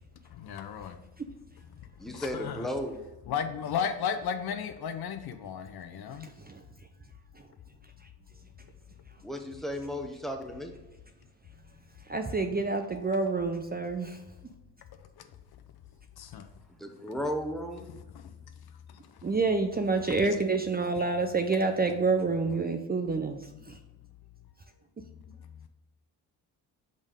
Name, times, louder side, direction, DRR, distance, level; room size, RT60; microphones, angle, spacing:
voice 1, 0.2-1.0 2.0-2.7 3.3-6.3 15.0-15.3 16.2-16.5 17.9-18.3 18.9-19.3 21.0-21.1 22.5-22.8 23.6-23.7, left 7 dB, 60° left, 0.8 m, -35 dB
voice 2, 2.0-3.0 9.2-10.7 16.8-17.9, equal, ahead, 1.2 m, -34 dB
voice 3, 6.2-6.6 7.3-7.5 8.0-8.1 12.0-14.2 19.2-23.8, right 3 dB, 20° right, 0.6 m, -28 dB
5.3 x 5.2 x 3.7 m
supercardioid pair, 55°, 43 cm